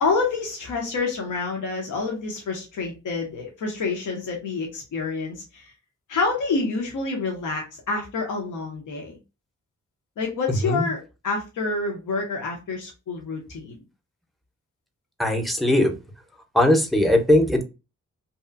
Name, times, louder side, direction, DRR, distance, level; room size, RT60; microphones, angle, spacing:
voice 1, 0.0-5.7 6.1-9.1 10.2-13.8, left 4 dB, 90° left, 0 dB, 0.7 m, -28 dB
voice 2, 15.2-15.9 16.5-17.6, left 1 dB, ahead, 5 dB, 0.5 m, -19 dB
2.8 x 2.4 x 2.3 m, 0.28 s
cardioid pair, 85°, 30 cm